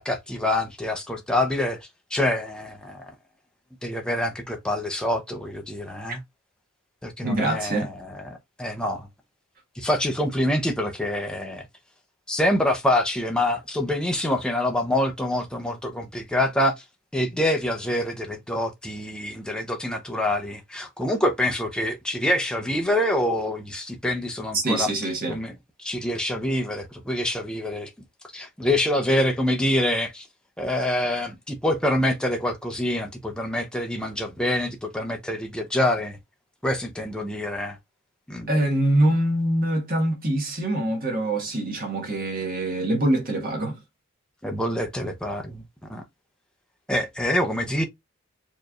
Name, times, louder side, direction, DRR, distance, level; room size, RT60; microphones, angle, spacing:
voice 1, 0.0-3.1 3.8-6.2 7.0-9.1 9.8-11.7 12.3-16.7 17.1-24.9 25.3-25.5 25.8-27.9 28.3-30.3 30.6-36.2 36.6-37.8 38.3-38.5 44.4-45.6 45.9-46.0 46.9-47.9, left 1 dB, 5° left, 0.6 m, -26 dB
voice 2, 7.2-7.9 24.5-25.4 38.5-43.8, right 1 dB, 45° right, 1.6 m, -24 dB
4.5 x 3.0 x 2.3 m
head